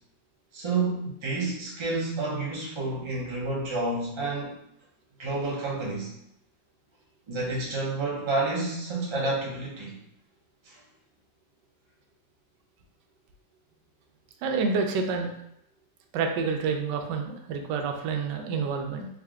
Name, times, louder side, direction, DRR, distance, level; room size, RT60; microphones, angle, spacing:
voice 1, 0.5-4.5 5.2-6.1 7.3-9.9 10.6-10.8, right 3 dB, 30° right, -4 dB, 0.5 m, -29 dB
voice 2, 14.4-15.3 16.1-19.1, right 5 dB, 85° right, 4 dB, 1.2 m, -28 dB
3.7 x 2.4 x 3.5 m, 0.76 s
omnidirectional pair, 1.8 m